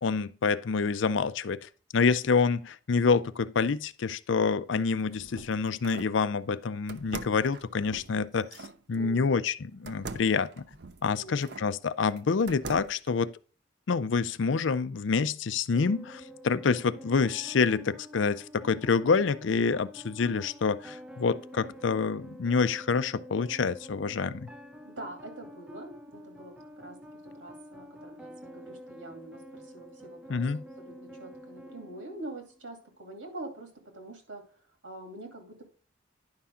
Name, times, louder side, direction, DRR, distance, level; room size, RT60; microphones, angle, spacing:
voice 1, 0.0-8.5 8.9-10.5 11.0-13.3 13.9-24.5 30.3-30.6, left 5 dB, 80° left, 0.5 m, -27 dB
sound 1, 4.8-6.2 6.9-8.8 9.9-11.7 12.2-13.1, right 3 dB, 60° right, 0.6 m, -43 dB
voice 2, 8.9-9.4 11.1-11.8 24.8-35.6, right 2 dB, 90° right, 2.7 m, -45 dB
sound 2, 15.7-32.7, equal, 5° right, 0.5 m, -48 dB
10.5 x 5.7 x 3.6 m
head